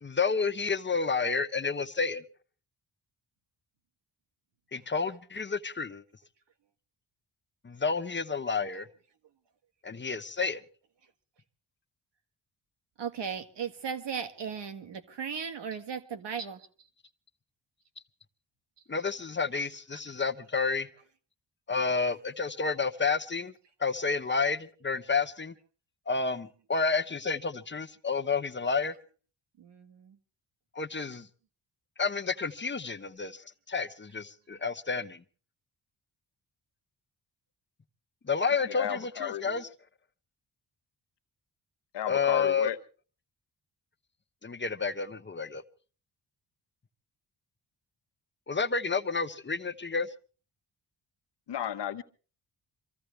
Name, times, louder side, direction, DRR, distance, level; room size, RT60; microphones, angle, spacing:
voice 1, 0.0-2.2 4.7-6.0 7.6-8.9 9.8-10.6 18.9-20.9 21.7-23.5 23.8-25.5 26.1-28.9 30.7-31.3 32.0-33.4 33.7-35.2 38.3-39.6 42.1-42.7 44.4-45.6 48.5-50.1, left 5 dB, 25° left, 1.0 m, -30 dB
voice 2, 13.0-16.9 19.9-20.2 21.8-21.9 29.6-30.2, right 7 dB, 75° right, 1.8 m, -37 dB
voice 3, 38.6-39.6 41.9-42.8 51.5-52.0, left 10 dB, 70° left, 1.1 m, -33 dB
25.0 x 15.0 x 3.4 m
cardioid pair, 85°, 43 cm